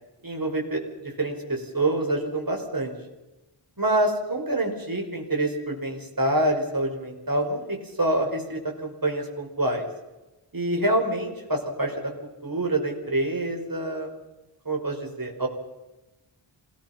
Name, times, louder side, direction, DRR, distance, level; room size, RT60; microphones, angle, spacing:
voice 1, 0.2-2.9 3.8-9.8 10.5-12.1 12.4-14.1 14.7-15.5, right 1 dB, 40° right, 2 dB, 5.2 m, -26 dB
27.0 x 19.0 x 5.8 m, 1.0 s
wide cardioid pair, 85°, 50 cm